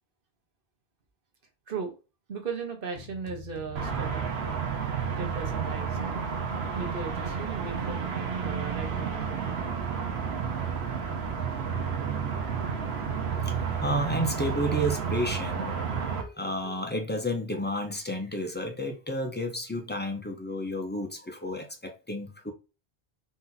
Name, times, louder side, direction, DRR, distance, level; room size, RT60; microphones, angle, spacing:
voice 1, 2.3-4.3 5.2-6.3 6.8-9.7, right 5 dB, 60° right, 1.1 m, -37 dB
sound 1, 3.0-5.5, left 6 dB, 65° left, 1.2 m, -47 dB
sound 2, 3.8-16.2, right 6 dB, 80° right, 1.1 m, -31 dB
voice 2, 13.4-22.5, equal, 15° left, 0.5 m, -31 dB
4.1 x 2.7 x 4.0 m
omnidirectional pair, 1.1 m